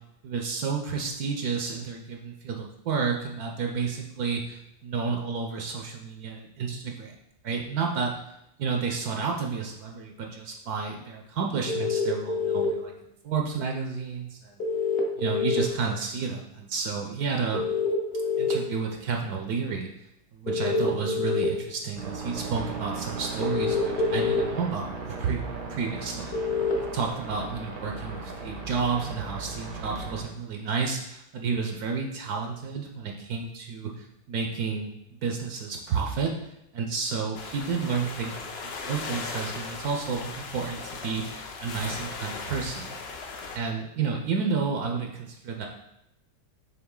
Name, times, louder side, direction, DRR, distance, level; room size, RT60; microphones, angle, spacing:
voice 1, 0.2-7.1 7.4-8.1 8.6-12.9 13.2-14.6 15.2-17.6 18.4-19.9 20.3-25.4 25.7-26.3 26.9-34.9 35.2-36.3 36.7-43.0 43.5-45.7, right 5 dB, 70° right, 1 dB, 1.1 m, -31 dB
sound 1, 11.7-12.7 14.6-15.6 17.5-18.5 20.5-21.4 23.4-24.4 26.3-26.7, left 5 dB, 45° left, 1.0 m, -26 dB
sound 2, 22.0-30.2, right 3 dB, 85° right, 1.6 m, -37 dB
sound 3, 37.3-43.6, left 4 dB, 70° left, 0.6 m, -38 dB
7.0 x 3.6 x 3.7 m, 0.84 s
omnidirectional pair, 1.8 m